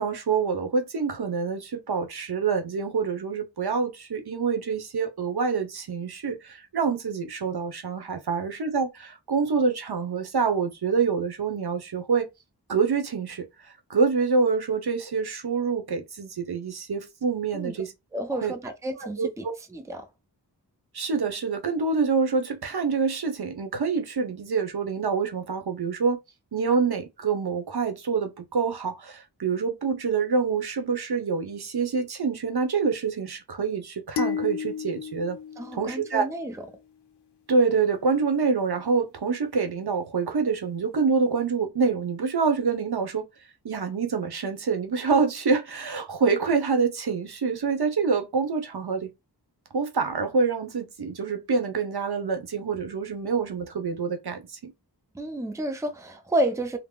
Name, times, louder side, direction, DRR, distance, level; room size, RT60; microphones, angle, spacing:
voice 1, 0.0-12.3 12.7-13.4 13.9-17.9 18.4-18.5 19.0-19.5 20.9-26.2 26.5-35.4 35.7-36.3 37.5-43.2 43.6-49.1 49.7-54.7, right 5 dB, 70° right, 0.8 m, -26 dB
voice 2, 18.1-20.1 35.6-36.6 55.1-56.8, right 1 dB, 10° right, 0.5 m, -30 dB
sound 1, 34.2-36.6, left 8 dB, 80° left, 0.5 m, -33 dB
3.6 x 2.0 x 2.2 m
wide cardioid pair, 60°, 41 cm